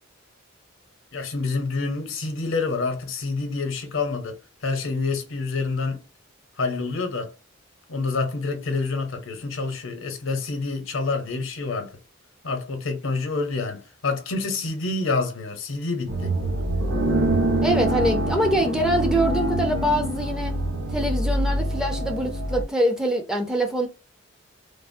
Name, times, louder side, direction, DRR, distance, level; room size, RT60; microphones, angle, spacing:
voice 1, 1.1-4.4 4.6-6.0 6.6-7.3 7.9-11.9 12.4-16.3, left 3 dB, 75° left, 0.8 m, -27 dB
sound 1, 16.1-22.6, right 1 dB, 70° right, 1.0 m, -25 dB
voice 2, 17.6-20.5 20.9-23.9, right 1 dB, 5° right, 0.5 m, -24 dB
3.3 x 2.0 x 2.5 m
head